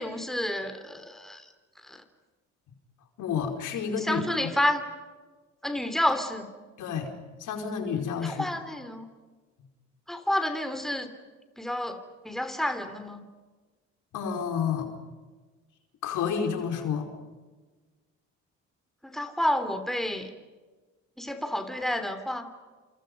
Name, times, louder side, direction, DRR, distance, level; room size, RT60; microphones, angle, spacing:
voice 1, 0.0-1.4 1.9-2.0 4.0-4.8 5.6-6.5 8.2-9.1 10.1-11.1 11.6-13.2 19.0-20.3 21.2-22.5, left 1 dB, ahead, 8 dB, 3.3 m, -29 dB
voice 2, 3.2-4.5 6.8-7.1 7.4-8.5 14.1-14.9 16.0-17.1, left 6 dB, 85° left, 4 dB, 4.9 m, -30 dB
29.5 x 28.0 x 5.4 m, 1.3 s
cardioid pair, 90°, 30 cm